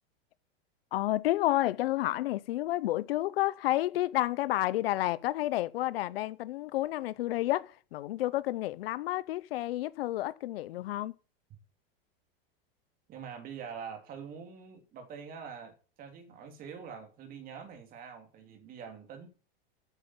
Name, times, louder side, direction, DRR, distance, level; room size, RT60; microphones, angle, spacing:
voice 1, 0.9-11.1, left 16 dB, 75° left, 0.7 m, -30 dB
voice 2, 13.1-19.3, right 6 dB, 30° right, 2.8 m, -45 dB
9.1 x 7.1 x 7.3 m
supercardioid pair, 150°, 29 cm